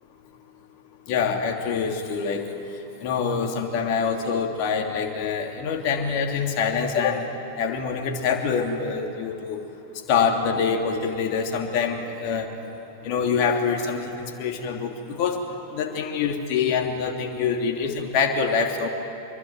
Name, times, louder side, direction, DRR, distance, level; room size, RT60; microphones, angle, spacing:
voice 1, 1.1-2.4 3.0-7.3 7.6-9.6 10.1-12.5 13.0-14.1 14.4-15.4 15.7-18.9, left 6 dB, 45° left, 3 dB, 3.0 m, -25 dB
25.0 x 23.0 x 9.2 m, 2.9 s
figure-of-eight pair, 90°, 0 cm